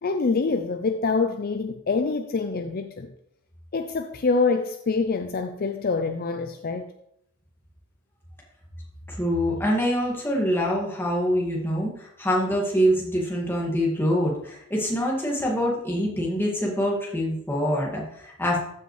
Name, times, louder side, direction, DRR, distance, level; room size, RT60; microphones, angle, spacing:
voice 1, 0.0-3.1 3.7-6.9, left 4 dB, 45° left, 7 dB, 0.5 m, -25 dB
voice 2, 9.1-18.6, equal, 10° left, -3 dB, 2.0 m, -25 dB
13.5 x 5.5 x 3.2 m, 0.78 s
head